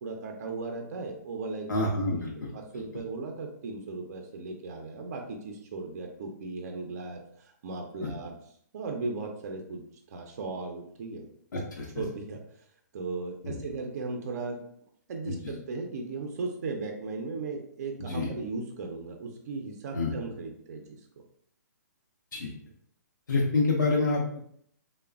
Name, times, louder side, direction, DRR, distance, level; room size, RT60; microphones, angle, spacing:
voice 1, 0.0-1.8 2.1-2.2 2.5-8.3 8.7-9.8 10.1-11.3 11.9-12.4 12.9-14.6 15.1-21.0, right 3 dB, 55° right, 3 dB, 0.4 m, -37 dB
voice 2, 1.7-2.5 8.0-8.1 11.5-12.0 13.4-13.6 15.3-15.4 18.0-18.3 19.9-20.1 22.3-22.5 23.3-24.4, left 3 dB, 80° left, -2 dB, 0.6 m, -28 dB
3.0 x 2.1 x 2.3 m, 0.66 s
hypercardioid pair, 140°, 10 cm